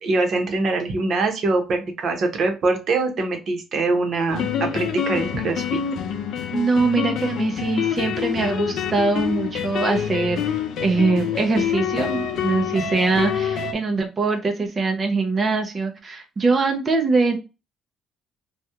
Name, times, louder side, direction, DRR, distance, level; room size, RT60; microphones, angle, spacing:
voice 1, 0.0-5.8, right 3 dB, 50° right, 5 dB, 0.9 m, -23 dB
sound 1, 4.3-13.7, left 8 dB, 70° left, 0.5 m, -26 dB
voice 2, 6.5-10.4 10.8-17.4, right 3 dB, 30° right, 3 dB, 0.6 m, -22 dB
2.9 x 2.3 x 3.5 m, 0.28 s
cardioid pair, 135°, 0 cm